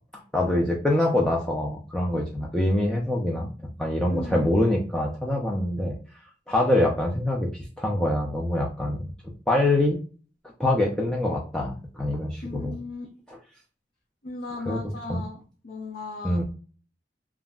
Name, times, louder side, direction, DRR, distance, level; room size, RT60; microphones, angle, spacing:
voice 1, 0.1-3.5 3.8-6.0 6.5-7.5 7.8-9.0 9.5-10.0 10.6-12.8 14.7-14.8 15.1-15.2 16.2-16.4, left 1 dB, 5° left, -2 dB, 0.4 m, -24 dB
voice 2, 4.1-4.5 12.4-13.1 14.2-15.4 15.6-16.4, left 3 dB, 70° left, -2 dB, 0.6 m, -36 dB
2.4 x 2.0 x 3.5 m, 0.37 s
head